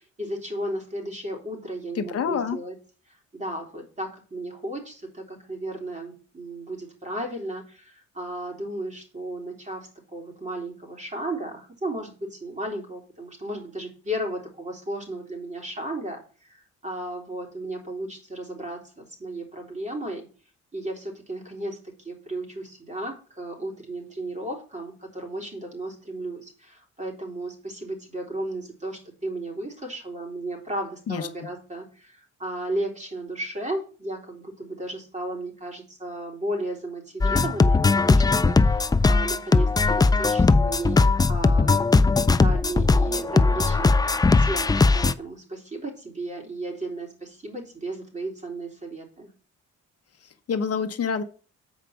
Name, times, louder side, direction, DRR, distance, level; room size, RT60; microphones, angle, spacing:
voice 1, 0.0-2.7 3.1-20.3 20.7-49.3, right 1 dB, 25° right, 0 dB, 3.7 m, -34 dB
voice 2, 2.0-2.6 31.1-31.3 50.5-51.2, left 6 dB, 50° left, 8 dB, 1.0 m, -27 dB
sound 1, 37.2-45.1, left 3 dB, 15° left, 0.4 m, -19 dB
7.4 x 5.1 x 5.7 m, 0.38 s
cardioid pair, 90°, 30 cm